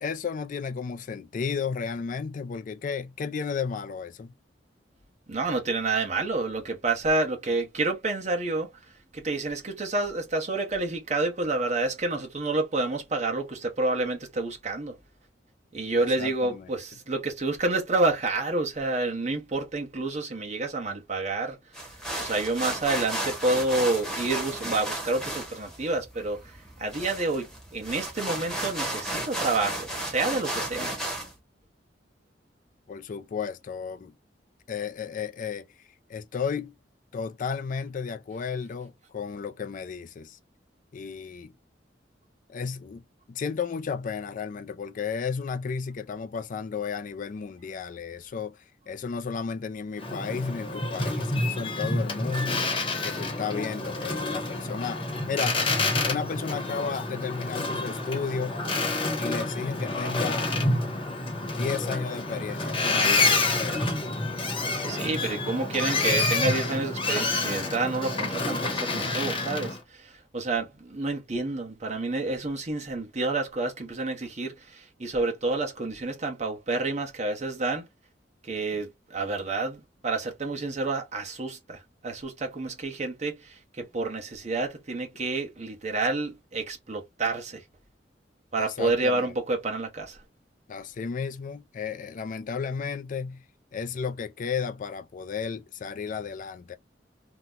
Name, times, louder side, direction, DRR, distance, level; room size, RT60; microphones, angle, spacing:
voice 1, 0.0-4.3 16.0-16.7 32.9-34.1 34.7-36.7 37.1-40.4 40.9-41.5 42.5-43.0 43.3-48.6 48.9-52.7 53.0-55.7 56.1-58.6 59.2-60.5 61.5-63.8 88.6-89.3 90.7-93.4 93.7-96.8, left 6 dB, 45° left, 0.4 m, -33 dB
voice 2, 5.3-8.8 9.1-15.0 15.7-21.9 22.2-26.5 26.8-31.0 64.5-77.9 78.4-87.6 88.5-90.2, right 3 dB, 40° right, 1.0 m, -29 dB
sound 1, 21.7-31.3, right 1 dB, 5° left, 1.0 m, -34 dB
Boat Water vehicle, 50.0-69.8, left 2 dB, 30° left, 0.9 m, -28 dB
2.9 x 2.1 x 3.6 m
head